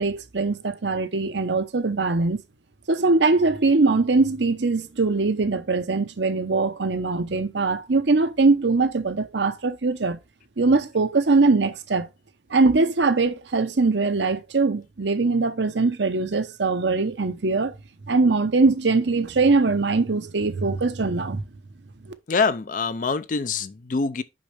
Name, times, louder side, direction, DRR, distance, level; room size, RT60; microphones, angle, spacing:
voice 1, 0.0-2.4 2.9-10.2 10.6-12.1 12.5-17.7 18.1-21.4, right 3 dB, 75° right, 0.8 m, -21 dB
voice 2, 22.3-24.2, left 4 dB, 45° left, 0.4 m, -25 dB
6.1 x 5.3 x 3.3 m
head